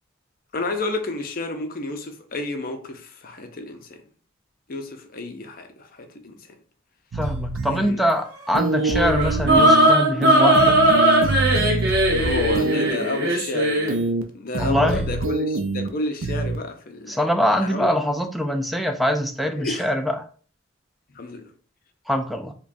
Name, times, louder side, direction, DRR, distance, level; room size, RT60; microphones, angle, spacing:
voice 1, 0.5-4.0 4.7-6.4 7.7-8.0 12.1-14.0 14.3-17.2 17.6-17.9 19.5-19.8 21.1-21.5, left 2 dB, 45° left, 0.6 m, -31 dB
voice 2, 7.1-10.8 14.6-15.1 17.1-20.2 22.1-22.5, equal, ahead, 0.4 m, -23 dB
sound 1, 7.1-7.9 8.5-9.9 10.2-12.9 13.9-14.2 14.5-15.9 16.2-16.6, right 3 dB, 75° right, 0.5 m, -26 dB
sound 2, 8.7-14.0, right 1 dB, 55° right, 1.0 m, -18 dB
5.0 x 2.3 x 2.6 m
head